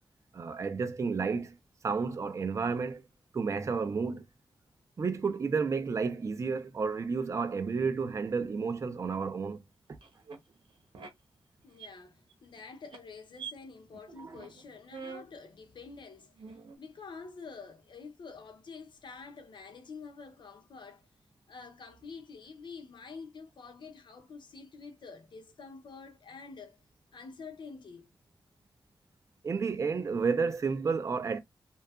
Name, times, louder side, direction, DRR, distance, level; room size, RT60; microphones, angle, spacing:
voice 1, 0.3-1.5 1.8-3.0 3.3-4.2 5.0-9.6 14.2-14.4 29.4-31.4, right 5 dB, 35° right, 0.4 m, -31 dB
sound 1, 10.0-10.4 10.9-11.1 11.6-11.9 12.3-12.6 12.9-13.0 13.3-13.5 13.9-14.0 14.3-14.6 14.9-15.3 15.9-16.0 16.4-16.8, right 5 dB, 90° right, 0.7 m, -44 dB
voice 2, 11.6-16.3 16.8-21.1 21.5-26.8 27.1-28.1, left 4 dB, 70° left, 0.6 m, -48 dB
2.8 x 2.2 x 2.3 m
wide cardioid pair, 125°, 8 cm